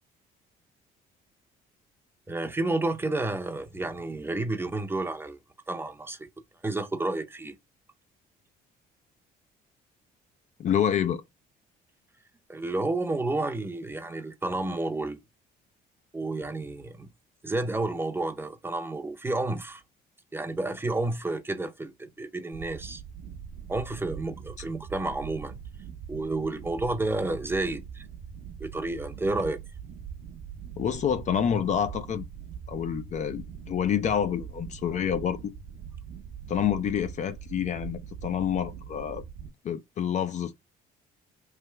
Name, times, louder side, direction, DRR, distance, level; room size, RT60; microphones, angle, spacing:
voice 1, 2.3-5.4 5.7-6.3 6.6-7.6 12.5-15.2 16.1-17.1 17.4-19.8 20.3-23.0 23.7-25.6 26.1-28.1 28.6-29.6, right 2 dB, 15° right, 0.6 m, -30 dB
voice 2, 10.6-11.2 30.8-32.3 32.7-35.5 36.5-39.2 39.6-40.5, left 9 dB, 45° left, 0.5 m, -28 dB
sound 1, 22.5-39.5, right 8 dB, 70° right, 0.8 m, -42 dB
3.3 x 2.9 x 4.5 m
cardioid pair, 110°, 17 cm